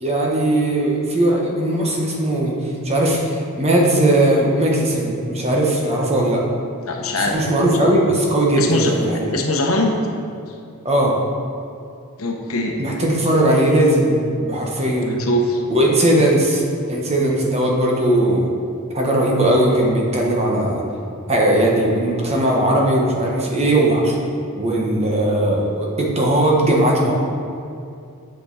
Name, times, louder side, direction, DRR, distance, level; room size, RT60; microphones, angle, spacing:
voice 1, 0.0-2.5 2.8-6.4 7.1-9.3 10.8-11.2 12.8-15.2 15.7-16.6 16.9-18.5 18.9-20.8 21.3-24.2 24.5-27.1, right 1 dB, 30° right, -2 dB, 1.2 m, -18 dB
voice 2, 6.8-8.0 8.6-8.9 9.3-9.9 12.2-12.8 15.2-15.6, left 1 dB, 70° left, 2 dB, 1.0 m, -22 dB
9.2 x 6.2 x 4.1 m, 2.5 s
head